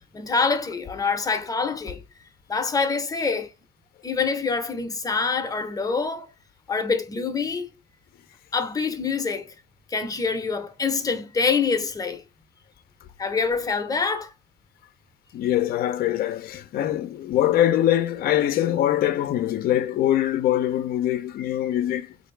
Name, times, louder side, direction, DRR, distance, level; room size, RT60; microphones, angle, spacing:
voice 1, 0.1-2.0 2.5-3.5 4.0-6.3 6.7-7.7 8.5-9.5 9.9-12.2 13.2-14.3, left 4 dB, 20° left, 0.7 m, -25 dB
voice 2, 15.3-22.1, left 12 dB, 60° left, 0.5 m, -23 dB
3.8 x 2.6 x 3.2 m
cardioid pair, 110°, 17 cm